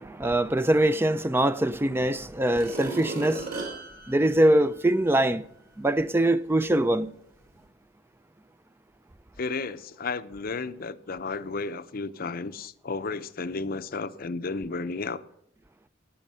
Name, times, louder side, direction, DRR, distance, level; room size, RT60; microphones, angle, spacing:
voice 1, 0.0-3.5 4.1-5.4 5.8-7.1, right 1 dB, 10° right, 0.4 m, -23 dB
sound 1, 2.3-5.2 5.7-5.8, right 3 dB, 50° right, 3.7 m, -37 dB
voice 2, 9.4-15.2, left 4 dB, 50° left, 0.6 m, -33 dB
18.0 x 6.5 x 5.5 m
head